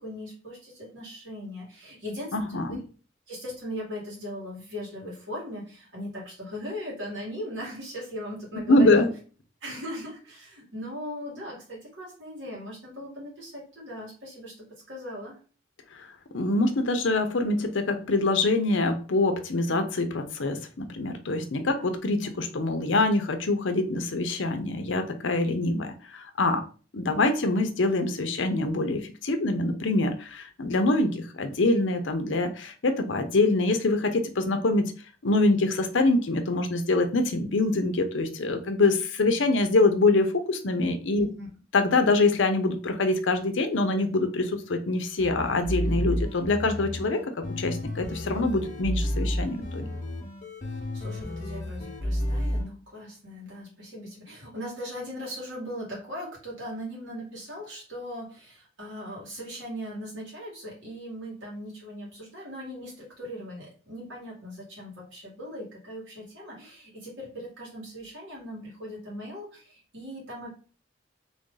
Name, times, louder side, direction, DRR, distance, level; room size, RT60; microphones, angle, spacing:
voice 1, 0.0-2.8 3.3-9.0 9.6-15.4 21.8-21.9 22.2-22.3 41.2-41.5 50.7-70.5, equal, 70° right, -4 dB, 2.1 m, -39 dB
voice 2, 2.3-2.7 8.7-9.1 15.9-16.1 16.3-26.6 26.9-34.9 35.2-41.3 41.7-47.2 47.6-49.9, left 2 dB, 75° left, 7 dB, 0.6 m, -25 dB
sound 1, 45.2-52.6, left 1 dB, 45° left, 0.9 m, -31 dB
3.4 x 2.5 x 3.8 m, 0.38 s
head